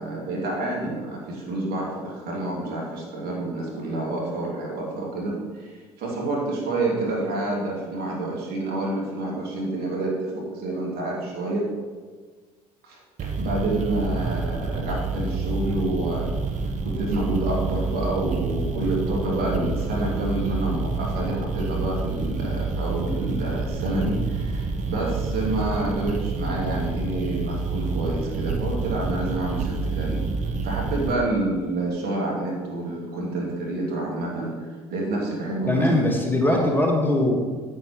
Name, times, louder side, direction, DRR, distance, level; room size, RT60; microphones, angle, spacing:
voice 1, 0.0-11.7 12.8-16.3 16.6-30.2 30.6-34.5 34.9-35.9 36.4-36.7, right 2 dB, 60° right, -3 dB, 2.6 m, -28 dB
sound 1, 13.2-31.1, right 4 dB, 45° right, 1.2 m, -28 dB
voice 2, 35.7-37.4, left 1 dB, 10° left, 0 dB, 1.8 m, -21 dB
9.3 x 9.1 x 3.2 m, 1.5 s
hypercardioid pair, 55°, 18 cm